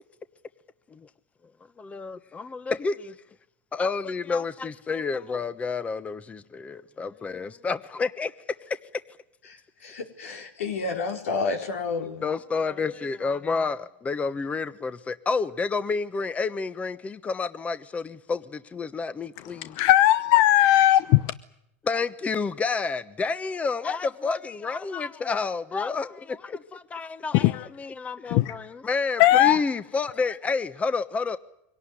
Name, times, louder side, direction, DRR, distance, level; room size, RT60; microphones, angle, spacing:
voice 1, 1.8-3.2 3.7-8.3 8.6-8.8 12.2-19.8 21.8-31.4, left 4 dB, 20° left, 1.1 m, -29 dB
voice 2, 9.5-12.3, left 4 dB, 85° left, 4.7 m, -30 dB
voice 3, 19.8-21.2 27.3-27.6 28.3-28.5 29.2-29.6, left 14 dB, 55° left, 0.9 m, -18 dB
24.5 x 18.0 x 9.9 m
supercardioid pair, 115°, 7 cm